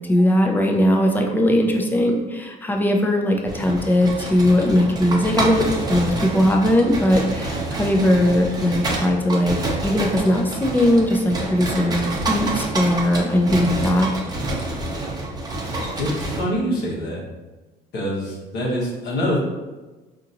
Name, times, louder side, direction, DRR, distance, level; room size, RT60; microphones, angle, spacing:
voice 1, 0.1-9.6 9.8-14.1, left 1 dB, 10° left, 1 dB, 0.5 m, -19 dB
sound 1, 3.5-16.5, right 2 dB, 25° right, 0.7 m, -28 dB
voice 2, 16.0-17.2 17.9-19.4, equal, 80° left, -5 dB, 1.2 m, -25 dB
4.1 x 2.9 x 2.6 m, 1.2 s
cardioid pair, 110°, 17 cm